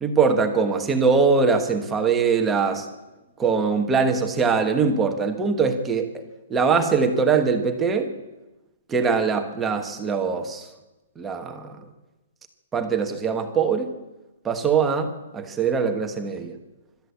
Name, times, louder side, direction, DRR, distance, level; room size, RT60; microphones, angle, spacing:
voice 1, 0.0-2.9 3.4-6.2 6.5-8.1 8.9-10.7 11.2-11.8 12.7-13.9 14.4-16.6, right 5 dB, 10° right, 5 dB, 1.4 m, -22 dB
25.5 x 13.5 x 8.5 m, 1.1 s
hypercardioid pair, 180°, 0 cm